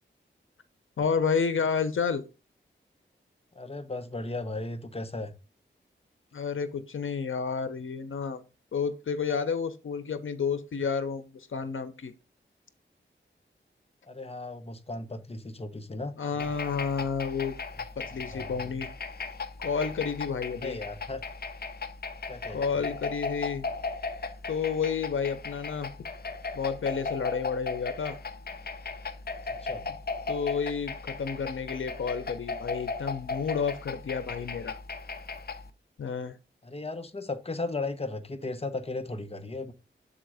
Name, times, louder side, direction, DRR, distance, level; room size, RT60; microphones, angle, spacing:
voice 1, 1.0-2.2 6.3-8.4 8.7-12.1 16.2-17.6 18.0-18.9 19.6-20.8 22.5-23.7 24.5-25.9 26.5-28.2 30.3-34.8 36.0-36.4, left 6 dB, 85° left, 0.9 m, -30 dB
voice 2, 3.5-5.3 14.0-16.5 17.7-18.8 20.6-21.3 22.3-22.7 29.6-29.9 36.6-39.7, left 2 dB, 30° left, 1.0 m, -36 dB
sound 1, 16.4-35.7, left 4 dB, 50° left, 0.8 m, -37 dB
7.4 x 3.8 x 4.9 m
wide cardioid pair, 85°, 20 cm